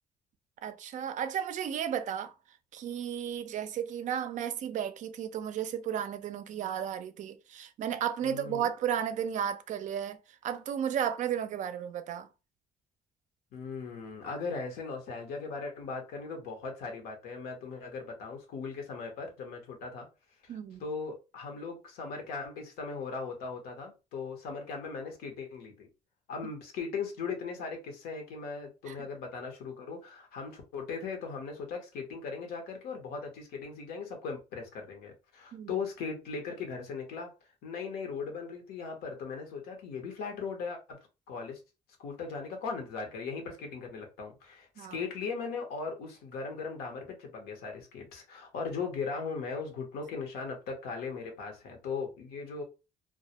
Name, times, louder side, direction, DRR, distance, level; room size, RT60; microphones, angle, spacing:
voice 1, 0.6-2.3 2.7-12.3 20.5-20.8 28.9-29.1 35.5-35.7 44.8-45.0, right 9 dB, 55° right, 0.4 m, -34 dB
voice 2, 8.2-8.7 13.5-20.1 20.8-25.9 26.3-37.3 37.6-41.0 41.3-41.6 42.0-52.6, left 5 dB, 85° left, 0.8 m, -38 dB
2.2 x 2.0 x 2.8 m
cardioid pair, 95°, 15 cm